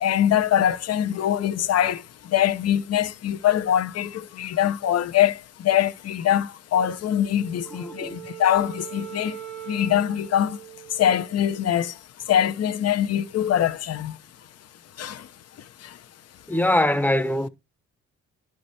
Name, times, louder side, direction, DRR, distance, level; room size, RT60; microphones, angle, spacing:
voice 1, 0.0-2.0 2.3-5.4 5.6-9.4 9.7-10.6 11.0-11.9 12.3-14.2 15.0-15.2, left 10 dB, 55° left, 0.9 m, -23 dB
Wind instrument woodwind instrument, 7.3-11.8, right 12 dB, 80° right, 2.0 m, -41 dB
voice 2, 7.7-8.2 16.5-17.5, left 1 dB, 5° left, 0.9 m, -23 dB
11.5 x 4.9 x 4.1 m
cardioid pair, 90°, 30 cm